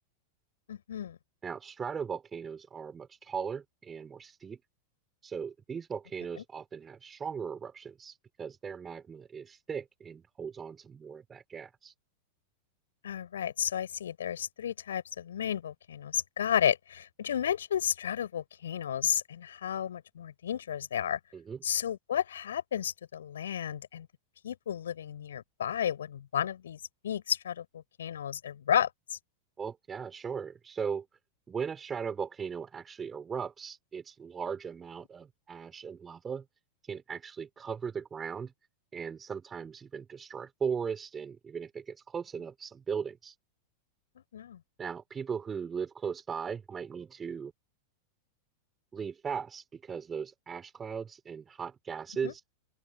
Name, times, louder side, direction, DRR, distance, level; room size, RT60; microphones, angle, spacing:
voice 1, 0.7-1.2 6.4-6.5 13.0-21.2 21.6-24.1 24.4-29.2 44.2-44.6 52.2-52.3, left 9 dB, 65° left, 5.4 m, -32 dB
voice 2, 1.4-4.6 5.2-11.9 21.3-21.6 29.6-31.0 31.5-36.4 36.8-38.5 38.9-43.4 44.8-47.5 48.9-52.4, right 6 dB, 20° right, 4.6 m, -38 dB
open air
figure-of-eight pair, 90°, 0 cm